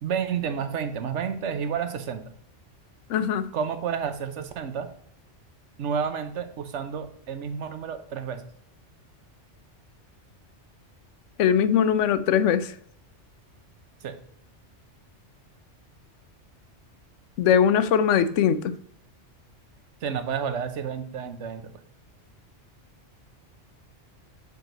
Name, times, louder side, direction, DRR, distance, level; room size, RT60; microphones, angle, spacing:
voice 1, 0.0-2.2 3.5-4.9 5.8-8.5 14.0-14.2 20.0-21.7, right 7 dB, 75° right, 1.1 m, -30 dB
voice 2, 3.1-3.5 11.4-12.7 17.4-18.7, left 8 dB, 85° left, 0.9 m, -21 dB
6.5 x 4.6 x 3.9 m
omnidirectional pair, 1.2 m